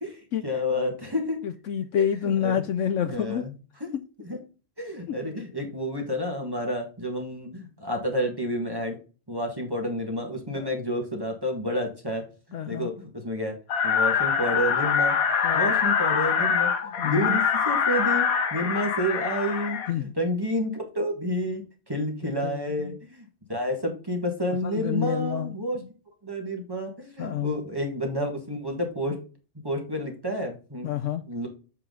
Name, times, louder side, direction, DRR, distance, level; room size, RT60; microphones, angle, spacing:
voice 1, 0.0-1.4 2.0-2.6 3.1-3.5 3.8-3.9 4.2-4.4 4.8-9.0 9.3-12.3 12.7-13.6 13.8-15.2 15.5-25.8 26.2-29.2 29.6-30.9 31.2-31.5, equal, 15° right, 2 dB, 1.6 m, -30 dB
voice 2, 1.4-3.4 5.1-5.2 10.5-10.7 12.5-12.9 15.4-15.7 17.0-17.3 19.9-20.1 22.2-22.9 24.6-25.8 27.2-27.6 30.8-31.2, left 9 dB, 70° left, 10 dB, 0.9 m, -28 dB
sound 1, 13.7-19.9, left 6 dB, 85° left, 1.4 m, -24 dB
7.5 x 5.6 x 3.8 m, 0.34 s
omnidirectional pair, 1.5 m